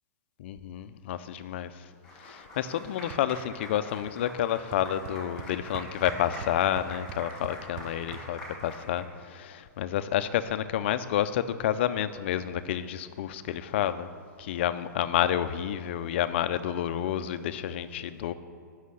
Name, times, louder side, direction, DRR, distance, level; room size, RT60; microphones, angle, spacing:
voice 1, 0.4-1.7 2.2-14.1 14.4-18.3, left 11 dB, 40° left, 12 dB, 0.5 m, -29 dB
Applause, 2.0-9.0, left 1 dB, 5° left, 2.3 m, -44 dB
sound 1, 3.1-3.5 3.7-4.1 4.4-4.5 4.7-8.2, right 8 dB, 20° right, 0.6 m, -42 dB
9.5 x 6.3 x 8.3 m, 2.4 s
hypercardioid pair, 170°, 10 cm